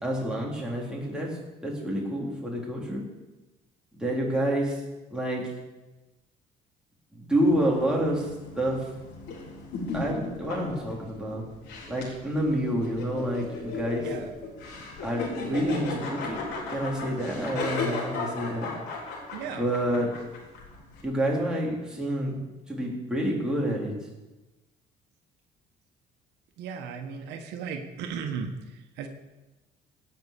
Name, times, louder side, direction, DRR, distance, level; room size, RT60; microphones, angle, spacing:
voice 1, 0.0-1.3 1.6-3.0 4.0-4.8 5.1-5.5 7.1-8.3 8.6-8.9 9.9-11.4 11.9-14.1 15.0-18.7 19.6-20.1 21.0-22.4 22.7-23.9, right 1 dB, 5° right, -3 dB, 3.8 m, -28 dB
sound 1, 7.4-21.0, left 3 dB, 85° left, 3.5 m, -36 dB
voice 2, 19.3-20.1 26.6-29.1, right 6 dB, 85° right, 5 dB, 1.3 m, -36 dB
17.0 x 5.8 x 6.8 m, 1.1 s
cardioid pair, 110°, 17 cm